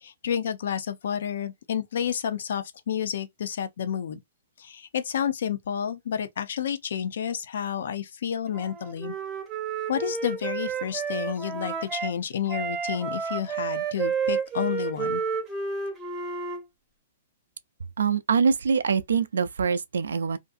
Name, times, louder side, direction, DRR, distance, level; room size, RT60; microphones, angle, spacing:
voice 1, 0.0-4.2 4.6-9.1 9.9-15.2, left 8 dB, 70° left, 0.5 m, -30 dB
Wind instrument woodwind instrument, 8.5-12.1 12.5-16.6, right 5 dB, 15° right, 0.6 m, -31 dB
voice 2, 18.0-20.4, right 6 dB, 90° right, 0.3 m, -24 dB
2.6 x 2.5 x 2.4 m
hypercardioid pair, 145°, 0 cm